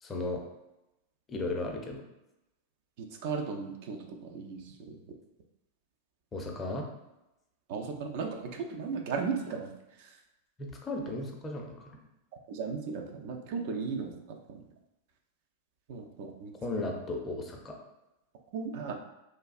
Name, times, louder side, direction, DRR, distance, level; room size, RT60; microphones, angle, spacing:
voice 1, 0.0-0.4 1.3-2.0 6.3-6.9 10.6-12.0 16.6-17.7, left 2 dB, 20° left, 1 dB, 0.5 m, -35 dB
voice 2, 3.0-5.0 7.7-9.7 10.0-10.1 12.5-14.1 15.9-16.5 16.8-16.9 18.5-18.9, right 5 dB, 50° right, 3 dB, 0.3 m, -36 dB
3.1 x 2.3 x 2.4 m, 0.94 s
figure-of-eight pair, 90°, 0 cm